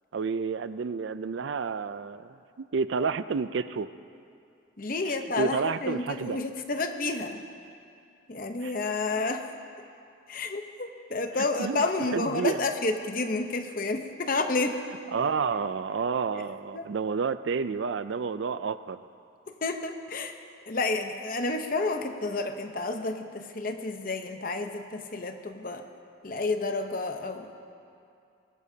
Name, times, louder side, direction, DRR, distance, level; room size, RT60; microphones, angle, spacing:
voice 1, 0.1-2.4 2.7-3.9 5.0-6.4 8.6-8.7 11.6-11.8 12.1-12.6 15.1-19.0, right 5 dB, 70° right, 14 dB, 0.4 m, -30 dB
voice 2, 4.8-7.4 8.3-9.5 10.3-14.8 16.7-16.9 19.5-20.4 20.7-25.9 26.2-27.5, left 3 dB, 45° left, 6 dB, 0.9 m, -30 dB
21.5 x 18.5 x 2.8 m, 2.5 s
head